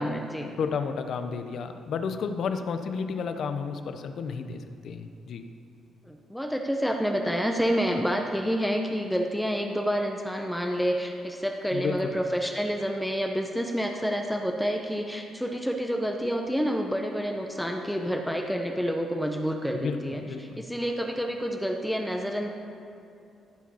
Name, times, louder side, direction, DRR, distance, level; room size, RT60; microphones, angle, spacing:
voice 1, 0.0-0.5 6.1-22.5, equal, ahead, 3 dB, 0.8 m, -28 dB
voice 2, 0.6-5.5 11.7-12.1 19.7-20.0 20.3-20.6, left 5 dB, 65° left, 8 dB, 0.7 m, -32 dB
14.5 x 5.1 x 5.6 m, 2.6 s
cardioid pair, 90°, 0 cm